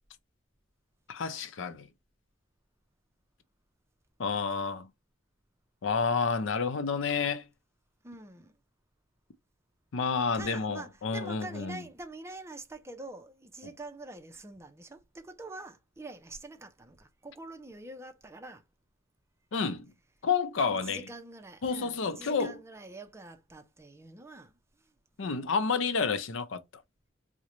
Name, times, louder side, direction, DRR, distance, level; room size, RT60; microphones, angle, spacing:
voice 1, 1.1-1.9 4.2-4.9 5.8-7.4 9.9-11.8 19.5-19.9 20.2-21.0 21.6-22.6 25.2-26.6, left 5 dB, 75° left, 0.5 m, -30 dB
voice 2, 8.0-8.5 10.3-18.6 20.8-24.5, right 2 dB, 15° right, 0.5 m, -45 dB
3.7 x 2.1 x 3.0 m
head